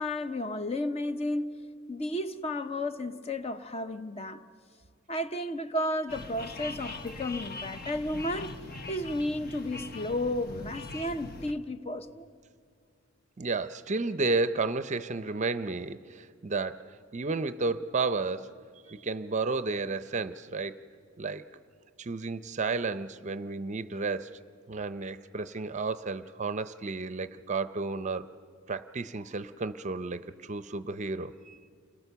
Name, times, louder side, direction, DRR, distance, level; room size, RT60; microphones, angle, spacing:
voice 1, 0.0-1.6 1.9-4.4 5.1-8.6 8.9-12.3, left 1 dB, 30° left, 0.8 m, -33 dB
sound 1, 6.1-11.5, left 3 dB, 50° left, 1.1 m, -41 dB
voice 2, 13.4-16.8 17.1-18.5 18.9-20.8 21.2-21.5 22.0-24.3 24.7-28.3 28.7-31.6, right 3 dB, 35° right, 0.6 m, -32 dB
29.5 x 21.5 x 6.9 m
head